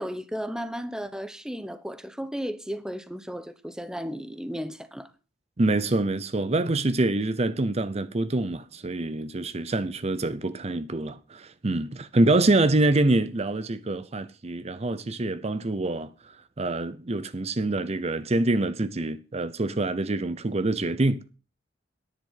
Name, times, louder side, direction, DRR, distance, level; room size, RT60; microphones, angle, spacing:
voice 1, 0.0-5.1, equal, 5° right, 0.9 m, -34 dB
voice 2, 5.6-16.1 16.6-21.3, right 2 dB, 35° right, 0.6 m, -25 dB
10.5 x 10.5 x 5.7 m
head